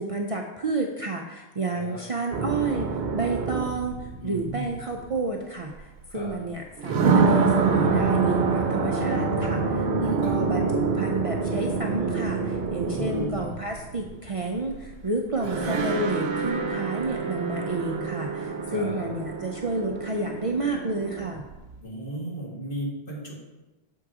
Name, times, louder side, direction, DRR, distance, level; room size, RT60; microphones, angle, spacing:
voice 1, 0.0-2.9 3.1-21.4, right 2 dB, 45° right, 1 dB, 0.5 m, -30 dB
voice 2, 1.7-2.0 4.2-4.7 6.1-6.4 10.0-10.9 12.9-13.5 15.4-15.8 18.7-19.0 21.8-23.3, right 1 dB, 60° left, -6 dB, 2.1 m, -36 dB
sound 1, 2.3-5.1 6.1-6.2 6.8-14.9 15.4-21.8, right 4 dB, 75° right, 0.9 m, -26 dB
7.0 x 3.7 x 4.8 m, 1.1 s
omnidirectional pair, 1.0 m